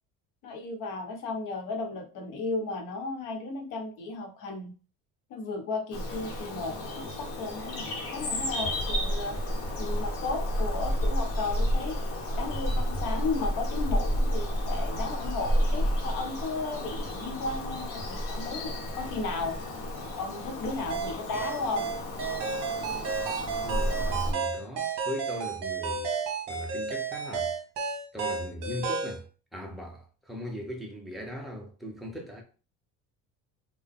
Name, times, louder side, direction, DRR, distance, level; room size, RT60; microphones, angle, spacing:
voice 1, 0.4-4.7 5.3-9.4 9.8-12.0 12.3-19.7 20.2-21.9, left 3 dB, 70° left, 0.9 m, -34 dB
Bird vocalization bird call bird song, 5.9-24.3, equal, 40° left, 0.9 m, -31 dB
sound 1, 20.9-29.2, right 5 dB, 55° right, 0.9 m, -32 dB
voice 2, 23.4-26.1 26.5-27.6 28.1-29.2 29.5-32.4, equal, ahead, 0.5 m, -39 dB
3.7 x 2.1 x 3.6 m
cardioid pair, 165°, 33 cm